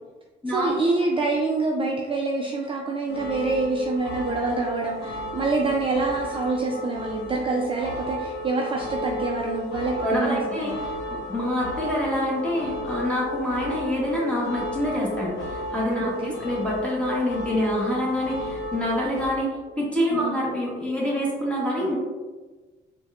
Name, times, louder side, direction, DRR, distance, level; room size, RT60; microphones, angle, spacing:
voice 1, 0.5-10.8 16.1-16.3 20.2-20.4, right 3 dB, 25° right, -1 dB, 0.3 m, -26 dB
sound 1, 3.1-19.3, left 1 dB, 80° left, 0.7 m, -33 dB
voice 2, 10.0-22.0, equal, 5° left, -5 dB, 1.1 m, -26 dB
4.0 x 2.2 x 2.3 m, 1.3 s
cardioid pair, 90°, 20 cm